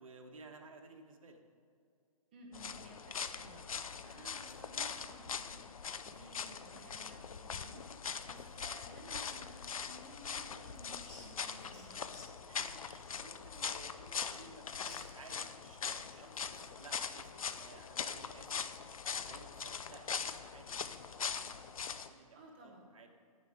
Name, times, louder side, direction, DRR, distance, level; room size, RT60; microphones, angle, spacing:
voice 1, 0.0-1.4 12.5-18.6 19.1-23.1, right 3 dB, 65° right, 4 dB, 1.5 m, -56 dB
voice 2, 2.3-5.8 6.0-7.8 8.2-12.1 18.1-18.3 22.3-22.9, right 1 dB, 15° right, -1 dB, 0.8 m, -56 dB
sound 1, 2.5-22.1, left 6 dB, 70° left, 0.7 m, -42 dB
sound 2, 10.8-16.8, left 1 dB, 5° left, 1.4 m, -60 dB
11.0 x 9.6 x 4.9 m, 2.4 s
hypercardioid pair, 180°, 19 cm